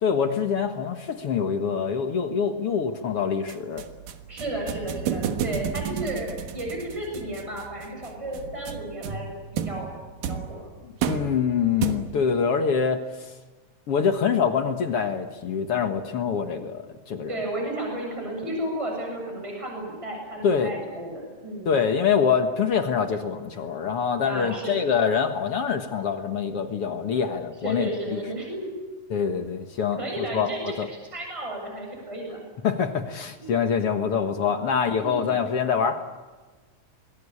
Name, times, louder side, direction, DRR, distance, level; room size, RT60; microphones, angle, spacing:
voice 1, 0.0-3.9 10.8-13.3 13.9-17.4 20.4-20.7 21.7-28.2 29.1-30.9 32.6-36.0, left 6 dB, 50° left, 7 dB, 2.1 m, -25 dB
sound 1, 3.5-12.4, right 8 dB, 85° right, 3.2 m, -33 dB
voice 2, 4.3-9.9 10.3-10.7 17.3-21.7 24.2-24.8 27.6-28.7 30.0-30.7 31.1-32.4 35.0-35.3, right 1 dB, 10° right, 0 dB, 7.6 m, -33 dB
27.5 x 21.5 x 8.7 m, 1.3 s
omnidirectional pair, 3.9 m